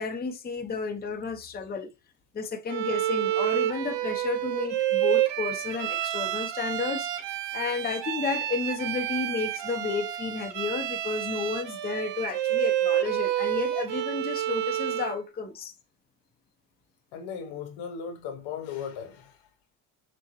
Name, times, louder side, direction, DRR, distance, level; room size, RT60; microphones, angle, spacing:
voice 1, 0.0-1.9 2.3-15.7, left 5 dB, 20° left, 0.7 m, -32 dB
Bowed string instrument, 2.7-15.2, right 13 dB, 65° right, 0.7 m, -29 dB
voice 2, 17.1-19.4, left 7 dB, 75° left, 1.1 m, -37 dB
6.4 x 2.2 x 3.0 m
supercardioid pair, 95°, 46 cm